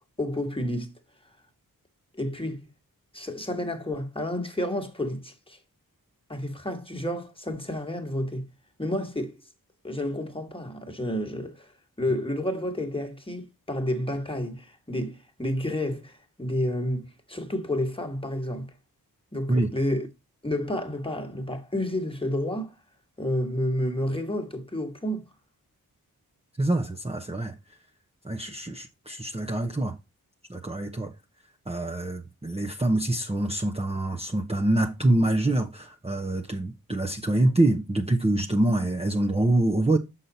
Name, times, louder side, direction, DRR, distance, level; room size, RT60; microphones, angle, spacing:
voice 1, 0.2-0.9 2.1-2.7 3.1-5.6 6.3-8.5 8.8-9.4 9.8-11.7 12.0-18.7 19.3-20.1 20.4-22.7 23.2-25.3, left 1 dB, 15° left, 1.6 m, -30 dB
voice 2, 26.6-27.6 28.2-30.0 30.5-31.1 31.7-40.0, right 1 dB, 15° right, 0.9 m, -25 dB
6.3 x 5.8 x 4.0 m
cardioid pair, 50°, 37 cm